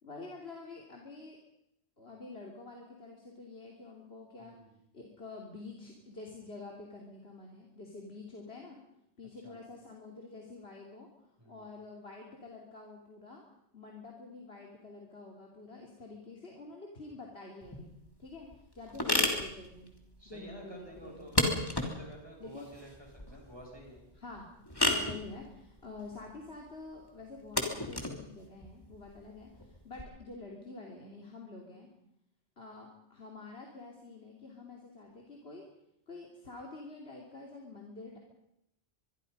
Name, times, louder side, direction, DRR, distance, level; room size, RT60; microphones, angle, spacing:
voice 1, 0.0-1.4 2.0-4.5 4.9-8.8 9.2-11.1 11.5-13.4 13.7-17.9 18.2-19.9 20.2-21.4 22.4-22.7 24.2-24.5 24.8-31.9 32.6-35.6 36.1-38.2, left 3 dB, 70° left, 0 dB, 3.2 m, -48 dB
voice 2, 4.4-4.8 9.4-9.6 11.4-11.7 20.2-21.4 21.8-24.0, right 1 dB, 25° right, 0 dB, 6.9 m, -50 dB
sound 1, 17.6-30.0, left 1 dB, 20° left, 3.1 m, -35 dB
24.5 x 23.0 x 5.4 m, 0.78 s
omnidirectional pair, 1.1 m